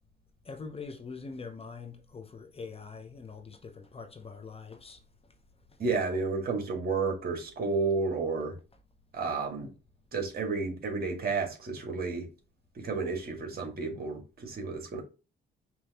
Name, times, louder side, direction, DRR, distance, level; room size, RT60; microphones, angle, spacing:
voice 1, 0.5-5.0, left 4 dB, 30° left, 0.9 m, -43 dB
voice 2, 5.8-8.6 9.1-9.7 10.1-12.3 12.7-15.0, right 4 dB, 50° right, 2.0 m, -31 dB
5.4 x 3.1 x 2.9 m
cardioid pair, 90°, 20 cm